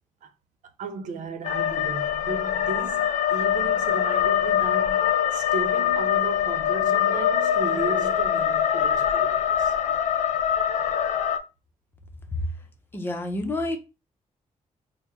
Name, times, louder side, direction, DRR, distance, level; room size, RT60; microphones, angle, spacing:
voice 1, 0.8-9.8, right 3 dB, 85° right, 0.6 m, -35 dB
sound 1, 1.4-11.4, left 9 dB, 75° left, 0.4 m, -23 dB
voice 2, 12.9-13.8, left 2 dB, 15° left, 0.7 m, -28 dB
4.3 x 2.1 x 3.5 m
wide cardioid pair, 150°, 13 cm